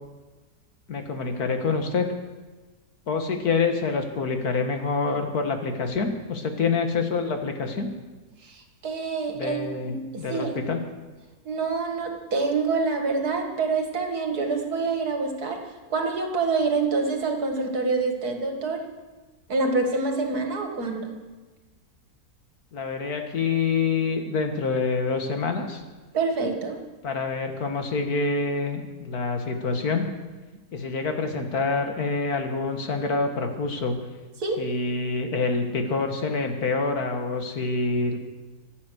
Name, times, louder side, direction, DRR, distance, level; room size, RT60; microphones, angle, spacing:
voice 1, 0.9-2.1 3.1-7.9 9.3-10.8 22.7-25.8 27.0-30.0 30.7-33.9 34.6-38.2, left 4 dB, 70° left, 5 dB, 2.1 m, -26 dB
voice 2, 8.4-9.6 9.8-10.0 10.3-10.8 11.5-15.6 15.9-18.8 19.5-21.2 26.1-26.8 34.4-34.6, right 4 dB, 75° right, 3 dB, 2.4 m, -26 dB
25.0 x 8.4 x 6.4 m, 1.2 s
omnidirectional pair, 1.6 m